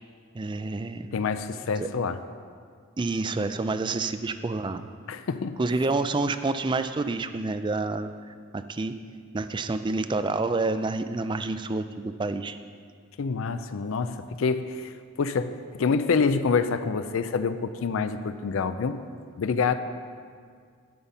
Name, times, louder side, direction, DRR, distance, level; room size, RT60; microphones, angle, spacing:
voice 1, 0.3-1.1 1.8-1.9 3.0-4.8 5.6-8.9 9.3-12.6, right 3 dB, 20° right, 11 dB, 0.3 m, -28 dB
voice 2, 1.1-2.2 5.1-5.6 13.2-19.0 19.4-19.7, left 5 dB, 70° left, 10 dB, 0.4 m, -27 dB
11.0 x 5.4 x 7.1 m, 2.1 s
head